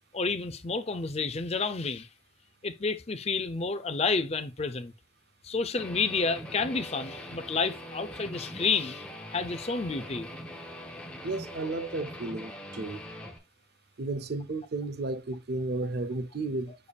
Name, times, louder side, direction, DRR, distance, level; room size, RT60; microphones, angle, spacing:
voice 1, 0.1-2.1 2.6-4.9 5.4-10.3, left 4 dB, 30° left, 0.5 m, -30 dB
Guitar, 5.8-13.4, equal, 5° left, 1.2 m, -42 dB
voice 2, 11.2-13.0 14.0-16.7, right 2 dB, 50° right, 0.6 m, -33 dB
6.9 x 6.7 x 2.3 m
head